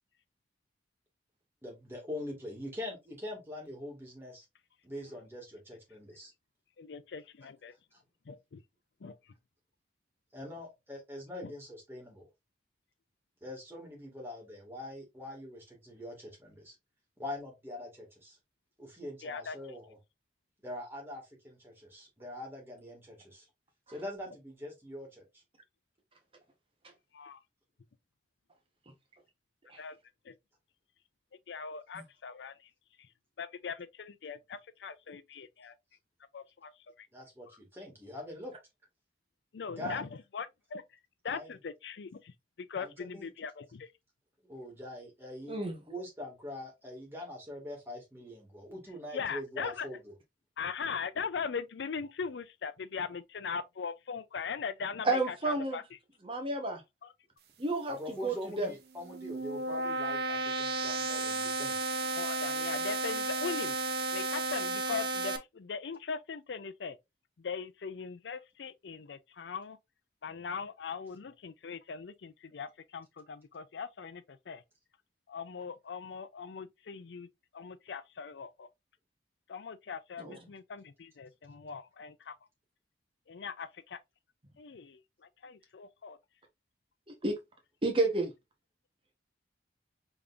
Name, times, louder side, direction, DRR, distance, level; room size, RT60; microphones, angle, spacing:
voice 1, 1.6-4.4 4.8-6.3 7.9-8.0 10.3-12.3 13.4-16.7 17.2-18.4 18.8-20.0 20.6-23.5 23.9-25.3 37.1-38.6 39.8-40.0 41.3-41.6 42.8-43.3 44.4-45.6 45.9-50.1 57.9-61.8, left 1 dB, 15° right, 2.0 m, -43 dB
voice 2, 6.8-7.7 8.3-8.6 9.0-9.2 11.4-11.5 19.2-19.6 27.1-27.4 29.8-30.0 30.3-30.4 31.5-32.6 33.4-35.7 36.3-36.7 37.0-37.1 39.5-40.8 41.2-43.9 49.1-49.9 50.6-55.8 62.1-63.8 64.1-67.0 67.4-69.8 70.2-74.6 75.3-77.3 77.5-78.7 79.5-82.3 83.3-84.0 84.6-85.0 85.4-86.2, left 5 dB, 80° left, 0.5 m, -40 dB
voice 3, 55.0-55.8 56.2-56.8 57.6-58.7 80.2-80.4 87.1-87.4 87.8-88.3, right 2 dB, 30° right, 1.1 m, -31 dB
sound 1, 58.9-65.4, right 2 dB, 60° right, 0.8 m, -33 dB
5.2 x 3.5 x 2.5 m
head